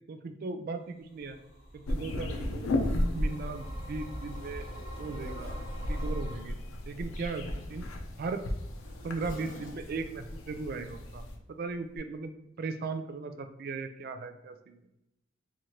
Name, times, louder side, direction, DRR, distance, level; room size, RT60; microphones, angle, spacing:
voice 1, 0.1-1.4 1.7-4.7 5.0-5.5 5.8-6.6 6.9-7.4 7.7-7.8 8.2-8.4 9.0-11.2 11.6-12.3 12.6-14.8, right 4 dB, 45° right, 8 dB, 0.3 m, -37 dB
sound 1, 1.1-6.4, equal, 30° left, 1.0 m, -44 dB
sound 2, 1.9-11.4, left 1 dB, 85° left, 0.5 m, -35 dB
Zipper (clothing), 2.6-2.7 3.3-6.2 7.2-10.1 11.1-11.3 11.9-12.0, left 1 dB, 60° left, 1.0 m, -51 dB
3.1 x 2.5 x 4.2 m, 0.87 s
head